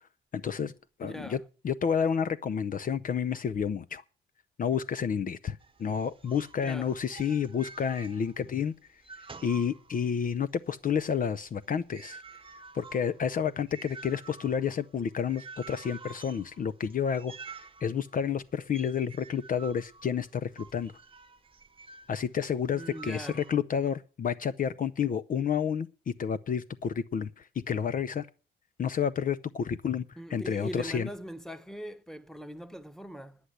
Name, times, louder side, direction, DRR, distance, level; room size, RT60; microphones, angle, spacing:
voice 1, 0.3-0.7 1.0-4.0 4.6-9.0 9.4-12.2 12.7-20.9 22.1-28.3 28.8-31.1, left 7 dB, 45° left, 0.6 m, -30 dB
voice 2, 1.0-1.4 6.6-6.9 22.7-23.4 30.2-33.4, equal, ahead, 1.2 m, -41 dB
sound 1, 5.6-8.6 8.9-10.3 10.7-22.2 22.7-23.5, right 4 dB, 25° right, 1.0 m, -49 dB
10.0 x 9.6 x 7.9 m
cardioid pair, 90°, 20 cm